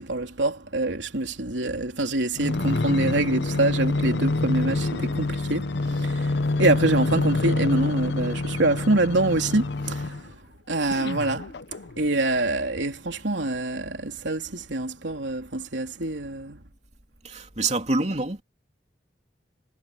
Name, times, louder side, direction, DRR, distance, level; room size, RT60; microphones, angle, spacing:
voice 1, 0.0-10.3 10.7-11.5 12.0-16.6, right 2 dB, 85° right, 3.2 m, -25 dB
robot tank, 2.3-10.3 10.9-12.2 12.8-12.9, left 2 dB, 70° left, 0.7 m, -26 dB
voice 2, 17.2-18.4, right 2 dB, 40° right, 3.0 m, -26 dB
head